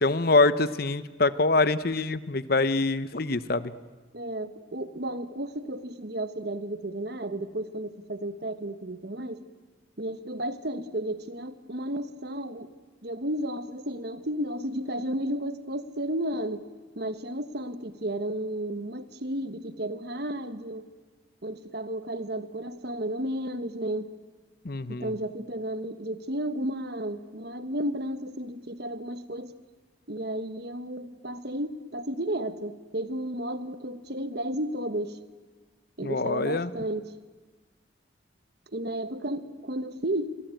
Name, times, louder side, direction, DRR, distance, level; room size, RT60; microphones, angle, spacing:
voice 1, 0.0-3.7 24.6-25.1 36.0-36.7, left 3 dB, 50° left, 15 dB, 0.9 m, -24 dB
voice 2, 4.1-9.4 10.0-12.7 13.0-16.6 17.0-20.9 21.4-24.1 24.9-29.5 30.1-35.2 36.0-37.1 38.7-40.3, right 1 dB, 55° right, 11 dB, 1.4 m, -33 dB
27.0 x 23.5 x 9.2 m, 1.3 s
head